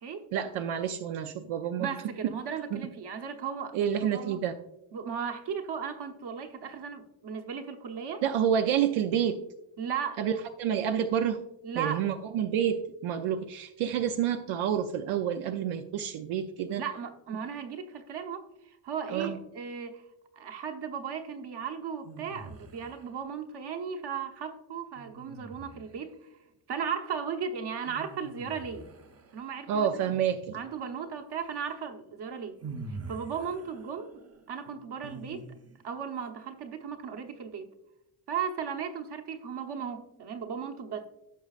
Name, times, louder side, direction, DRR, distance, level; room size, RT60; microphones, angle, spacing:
voice 1, 0.3-1.9 2.7-2.8 3.7-4.6 8.2-9.4 10.2-11.4 11.8-16.8 19.1-19.4 29.7-30.6, right 9 dB, 85° right, 0.7 m, -29 dB
voice 2, 1.8-4.4 4.9-8.2 9.8-10.2 11.6-12.0 16.7-20.0 20.3-26.1 26.7-28.9 29.3-30.1 30.5-32.6 32.9-34.2 34.5-35.5 35.8-37.7 38.3-41.1, right 7 dB, 55° right, 1.1 m, -36 dB
sound 1, 22.0-23.2 24.9-26.1 27.8-29.8 31.7-31.8 32.6-35.9, right 3 dB, 30° right, 0.8 m, -45 dB
16.0 x 6.2 x 2.5 m
cardioid pair, 120°, 48 cm